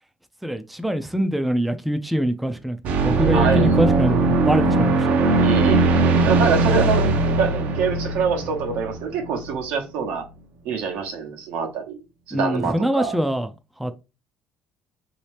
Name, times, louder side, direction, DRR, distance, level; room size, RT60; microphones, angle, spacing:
voice 1, 0.4-5.3 12.3-13.5 13.8-14.0, equal, ahead, 0.4 m, -24 dB
sound 1, 2.8-9.5, right 3 dB, 65° right, 0.7 m, -19 dB
voice 2, 3.3-3.7 5.4-5.8 6.2-7.1 7.3-10.2 10.6-12.0 12.3-13.1, right 6 dB, 85° right, 1.0 m, -25 dB
3.1 x 2.8 x 3.2 m
cardioid pair, 115°, 3 cm